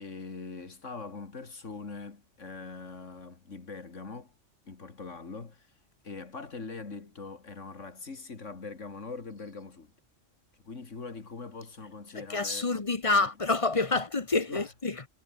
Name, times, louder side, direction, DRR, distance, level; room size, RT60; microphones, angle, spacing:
voice 1, 0.0-4.3 4.6-5.7 6.0-9.9 10.6-12.8 13.1-13.3 13.9-14.0 14.5-14.7, left 4 dB, 75° left, 2.8 m, -42 dB
voice 2, 12.1-15.1, left 3 dB, 30° left, 1.0 m, -28 dB
omnidirectional pair, 1.3 m